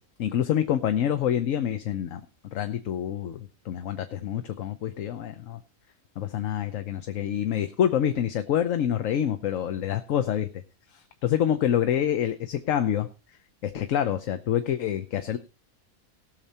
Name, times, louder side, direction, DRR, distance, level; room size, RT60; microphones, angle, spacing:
voice 1, 0.2-2.2 2.5-5.6 6.2-10.6 10.9-13.1 13.6-15.4, left 10 dB, 70° left, 9 dB, 1.2 m, -27 dB
18.0 x 6.8 x 4.2 m, 0.33 s
omnidirectional pair, 1.5 m